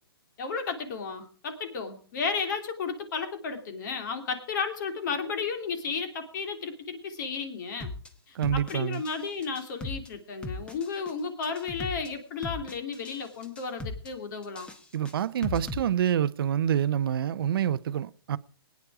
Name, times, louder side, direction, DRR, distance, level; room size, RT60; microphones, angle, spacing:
voice 1, 0.4-7.9 8.3-14.7, left 5 dB, 50° left, 2.8 m, -33 dB
sound 1, 7.8-8.1 8.4-9.2 9.4-10.1 10.4-11.1 11.4-12.1 12.4-13.2 13.4-14.1 14.4-15.8, left 2 dB, 10° left, 1.1 m, -37 dB
voice 2, 8.3-9.0 14.9-18.4, right 10 dB, 65° right, 0.6 m, -27 dB
20.5 x 9.5 x 4.8 m
hypercardioid pair, 150°, 13 cm